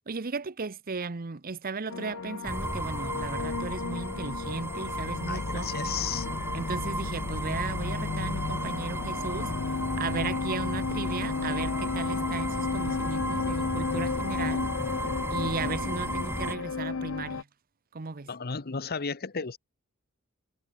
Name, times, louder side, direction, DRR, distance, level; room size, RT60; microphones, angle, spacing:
voice 1, 0.1-5.7 6.5-9.5 10.0-14.7 15.3-17.5 17.9-18.3, right 4 dB, 45° right, 0.8 m, -36 dB
sound 1, 1.9-17.4, left 4 dB, 70° left, 0.6 m, -33 dB
sound 2, 2.4-16.6, right 1 dB, 10° right, 2.1 m, -35 dB
voice 2, 5.3-6.3 15.0-15.1 18.3-19.6, left 6 dB, 45° left, 1.0 m, -34 dB
head